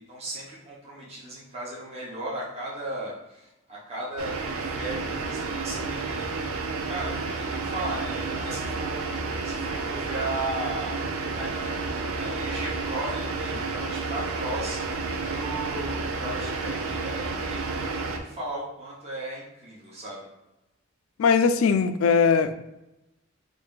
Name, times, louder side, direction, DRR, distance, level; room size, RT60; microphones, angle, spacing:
voice 1, 0.0-6.5 6.9-20.3, right 1 dB, 30° right, -6 dB, 0.9 m, -36 dB
sound 1, 4.2-18.2, right 3 dB, 90° right, 0.5 m, -31 dB
voice 2, 21.2-22.5, left 5 dB, 75° left, 10 dB, 0.3 m, -20 dB
3.2 x 2.5 x 3.7 m, 0.93 s
head